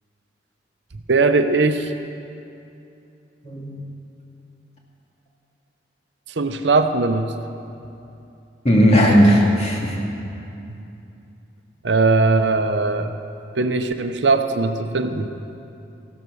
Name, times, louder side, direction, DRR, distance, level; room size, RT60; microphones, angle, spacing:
voice 1, 1.1-1.9 6.4-7.3 11.8-13.1 13.5-15.3, right 3 dB, 70° right, 8 dB, 0.7 m, -19 dB
voice 2, 8.6-10.0, equal, 35° left, -2 dB, 2.4 m, -15 dB
15.0 x 12.5 x 6.3 m, 2.8 s
head